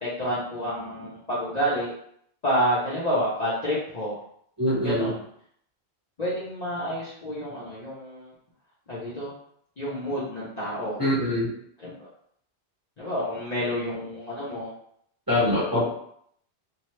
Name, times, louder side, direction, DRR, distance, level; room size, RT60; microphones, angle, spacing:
voice 1, 0.0-1.9 2.4-4.1 4.8-5.2 6.2-8.3 8.9-9.3 9.8-11.0 11.8-12.1 13.0-14.7, equal, 45° left, -8 dB, 0.8 m, -29 dB
voice 2, 4.6-5.1 11.0-11.5 15.3-15.8, left 1 dB, 20° right, -8 dB, 1.1 m, -23 dB
2.8 x 2.2 x 3.1 m, 0.67 s
omnidirectional pair, 1.1 m